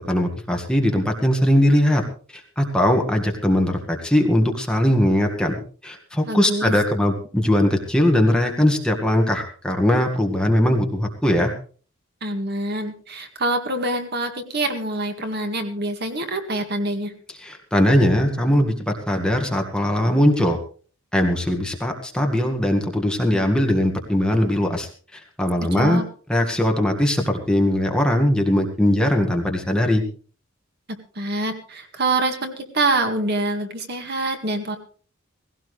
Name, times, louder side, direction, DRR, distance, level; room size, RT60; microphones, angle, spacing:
voice 1, 0.1-2.0 2.3-5.5 5.8-11.5 17.4-20.6 21.1-26.0 26.3-30.0, left 1 dB, 5° left, 2 dB, 1.8 m, -20 dB
voice 2, 6.2-6.7 12.2-17.1 25.8-26.0 31.2-34.8, right 2 dB, 50° right, 6 dB, 2.1 m, -25 dB
18.0 x 17.0 x 3.3 m, 0.40 s
head